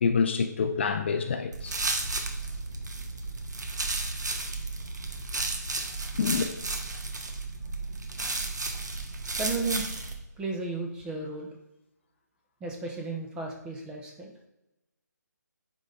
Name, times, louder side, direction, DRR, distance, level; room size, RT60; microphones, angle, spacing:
voice 1, 0.0-1.8 6.2-6.5, left 5 dB, 40° left, 0.6 m, -26 dB
sound 1, 1.5-10.1, right 3 dB, 70° right, 1.4 m, -33 dB
voice 2, 9.3-9.9 10.4-11.5 12.6-14.3, right 3 dB, 10° right, 0.8 m, -34 dB
9.6 x 4.0 x 3.8 m
figure-of-eight pair, 150°, 10 cm